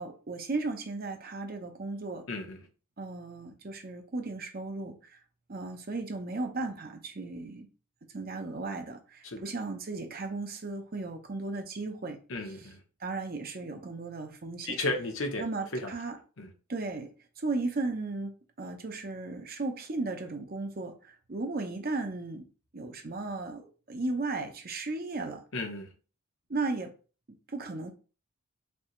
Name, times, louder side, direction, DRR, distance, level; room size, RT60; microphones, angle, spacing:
voice 1, 0.0-2.3 3.0-5.2 5.5-7.7 8.1-12.2 13.0-14.8 15.4-16.2 16.7-17.1 17.4-22.5 22.7-25.4 26.5-26.9 27.5-27.9, right 3 dB, 45° right, 0.7 m, -35 dB
voice 2, 2.3-2.7 9.2-9.4 12.3-12.8 14.7-15.4 15.7-15.9 16.4-16.5 25.5-25.9, left 2 dB, 65° left, 0.9 m, -34 dB
5.2 x 2.8 x 3.1 m
head